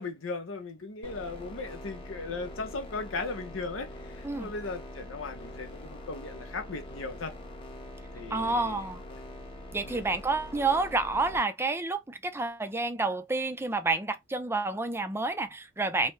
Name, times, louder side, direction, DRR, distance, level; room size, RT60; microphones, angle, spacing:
voice 1, 0.0-7.3 8.1-8.8 9.8-10.1, left 3 dB, 70° left, 0.8 m, -37 dB
sound 1, 1.0-11.4, left 1 dB, 25° left, 0.9 m, -44 dB
voice 2, 8.3-9.0 9.7-16.1, right 3 dB, 10° right, 0.4 m, -29 dB
3.2 x 2.1 x 3.1 m
head